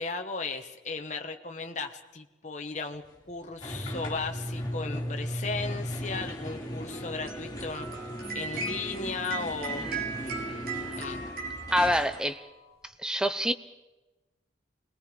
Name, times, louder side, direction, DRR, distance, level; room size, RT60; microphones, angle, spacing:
voice 1, 0.0-11.2, left 4 dB, 40° left, 4 dB, 1.3 m, -36 dB
sound 1, 3.6-12.2, equal, 20° left, 3.8 m, -37 dB
sound 2, 6.9-12.8, right 5 dB, 50° right, 3.5 m, -38 dB
voice 2, 11.7-12.4 13.0-13.5, equal, 5° right, 11 dB, 0.7 m, -27 dB
26.5 x 20.5 x 5.3 m, 1.1 s
head